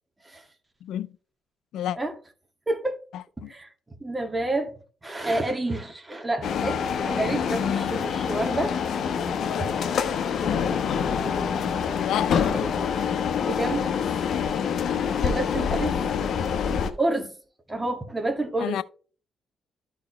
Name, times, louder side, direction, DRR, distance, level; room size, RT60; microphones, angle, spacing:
voice 1, 0.8-1.1 1.7-2.0 3.1-3.5 12.0-12.6 18.6-18.8, left 11 dB, 80° left, 0.5 m, -30 dB
voice 2, 2.7-3.0 3.5-3.7 4.0-4.7 5.0-8.8 9.6-9.7 12.5-12.7 13.4-14.1 15.2-16.0 17.0-17.3 17.7-18.8, right 2 dB, 15° right, 1.9 m, -29 dB
sound 1, 6.4-16.9, left 7 dB, 65° left, 1.0 m, -26 dB
13.0 x 4.8 x 3.1 m
cardioid pair, 90°, 0 cm